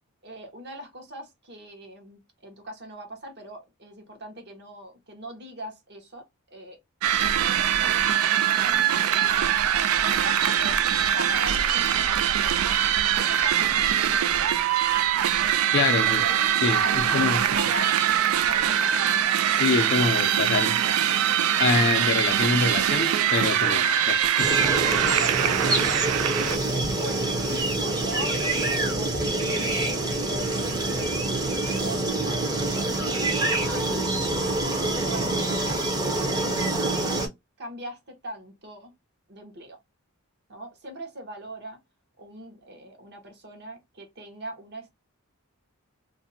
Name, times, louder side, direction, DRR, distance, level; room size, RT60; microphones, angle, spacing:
voice 1, 0.2-6.2 6.5-6.8 7.3-9.4 10.0-10.8 11.1-14.1 16.0-18.9 23.6-23.8 25.4-26.0 26.4-27.3 27.8-33.2 33.7-35.8 36.5-37.1 37.6-38.9 39.3-39.8 40.5-41.8 42.2-44.9, right 1 dB, 50° right, 0.9 m, -40 dB
sound 1, 7.0-26.6, right 10 dB, 75° right, 0.3 m, -23 dB
voice 2, 15.7-16.2 16.6-17.4 19.5-20.8 21.6-24.6, left 4 dB, 50° left, 0.4 m, -25 dB
sound 2, 24.4-37.3, right 2 dB, 15° right, 0.6 m, -26 dB
2.5 x 2.1 x 2.6 m
head